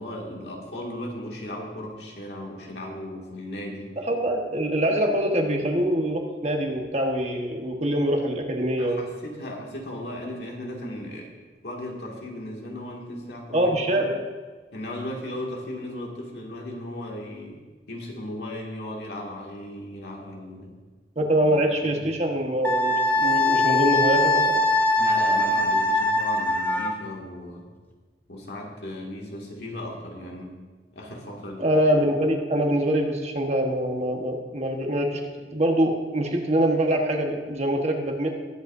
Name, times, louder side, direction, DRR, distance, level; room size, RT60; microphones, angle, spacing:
voice 1, 0.0-4.0 8.8-11.3 11.6-14.1 14.7-17.6 17.9-20.7 21.5-21.6 21.8-22.0 25.0-27.7 28.3-30.6 30.9-31.7, left 1 dB, 70° left, -1 dB, 2.2 m, -36 dB
voice 2, 4.0-9.0 13.5-14.2 21.2-24.6 31.6-35.2 35.5-38.3, right 1 dB, 40° right, 2 dB, 1.3 m, -24 dB
Wind instrument woodwind instrument, 22.6-27.0, left 1 dB, 10° left, 0.8 m, -22 dB
20.0 x 8.1 x 2.7 m, 1.4 s
head